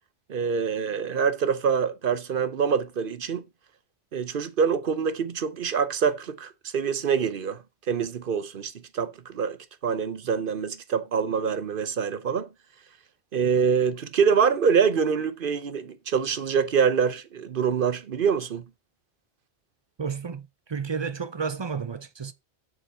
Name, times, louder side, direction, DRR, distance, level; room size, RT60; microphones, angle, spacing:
voice 1, 0.3-3.4 4.1-7.6 7.9-9.6 9.8-12.5 13.3-18.6, right 6 dB, 60° right, 0.9 m, -25 dB
voice 2, 20.0-22.3, right 5 dB, 35° right, 0.5 m, -32 dB
7.0 x 6.5 x 4.4 m
omnidirectional pair, 1.1 m